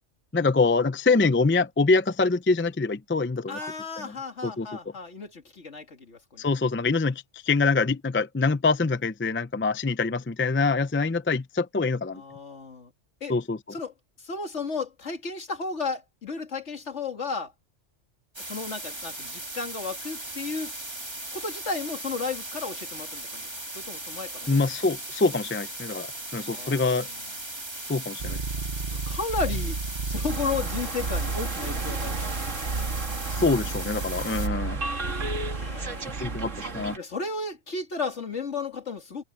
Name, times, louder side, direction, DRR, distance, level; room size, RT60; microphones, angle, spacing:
voice 1, 0.3-3.6 4.0-4.1 4.4-4.7 6.4-12.2 13.3-13.6 24.5-27.1 27.9-28.4 33.3-34.8 36.2-37.0, left 3 dB, 15° left, 0.4 m, -25 dB
voice 2, 3.5-6.4 12.1-12.9 13.2-13.3 13.7-13.9 14.2-17.5 18.4-20.7 21.3-23.5 23.7-24.6 26.5-27.0 28.9-29.8 30.1-32.3 35.5-36.2 37.0-39.2, left 4 dB, 70° left, 2.6 m, -33 dB
sound 1, 18.3-34.5, right 1 dB, 20° right, 2.2 m, -38 dB
sound 2, 28.2-36.7, right 4 dB, 45° right, 1.2 m, -32 dB
sound 3, 30.3-37.0, right 3 dB, 85° right, 2.4 m, -35 dB
omnidirectional pair, 1.2 m